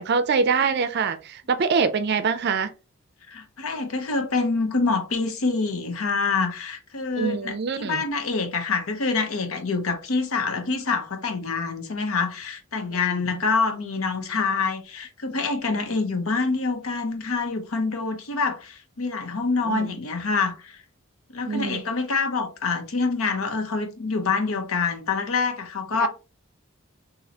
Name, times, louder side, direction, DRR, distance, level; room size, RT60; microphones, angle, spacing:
voice 1, 0.0-2.7 7.2-8.0 19.7-20.0 21.5-21.8 26.0-26.1, right 5 dB, 50° right, 0.4 m, -24 dB
voice 2, 3.3-20.8 21.3-26.1, left 4 dB, 80° left, 0.8 m, -26 dB
4.1 x 2.7 x 2.8 m
head